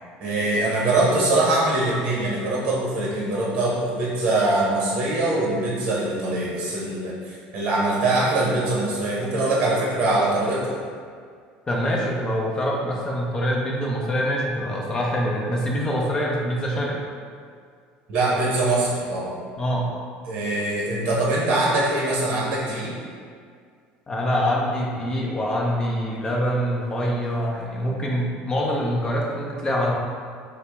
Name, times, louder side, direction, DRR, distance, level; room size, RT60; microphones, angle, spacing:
voice 1, 0.2-10.8 18.1-19.4 20.3-23.0, right 2 dB, 50° right, -5 dB, 0.7 m, -23 dB
voice 2, 11.7-17.0 19.6-19.9 24.1-29.9, equal, 20° left, -3 dB, 0.6 m, -25 dB
4.2 x 2.0 x 3.4 m, 2.1 s
cardioid pair, 130°, 4 cm